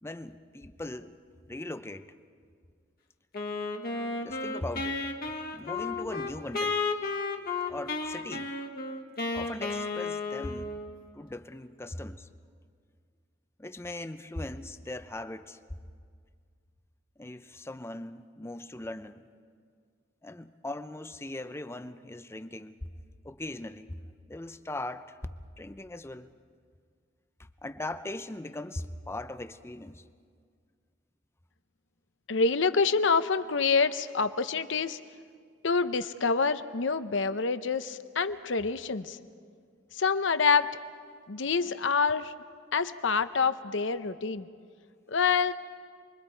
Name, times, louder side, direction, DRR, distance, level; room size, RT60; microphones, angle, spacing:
voice 1, 0.0-1.2 1.5-2.1 4.2-5.0 5.5-6.8 7.7-8.5 9.3-10.8 11.1-12.3 13.6-15.6 17.2-19.2 20.2-22.8 23.2-24.0 24.3-26.3 27.6-30.0, left 1 dB, 15° left, 0.6 m, -39 dB
Wind instrument woodwind instrument, 3.3-11.0, left 3 dB, 55° left, 1.7 m, -33 dB
voice 2, 32.3-35.0 35.6-39.2 39.9-40.7 41.3-42.3 42.7-44.5 45.1-45.5, left 5 dB, 70° left, 0.8 m, -26 dB
28.5 x 22.0 x 4.6 m
head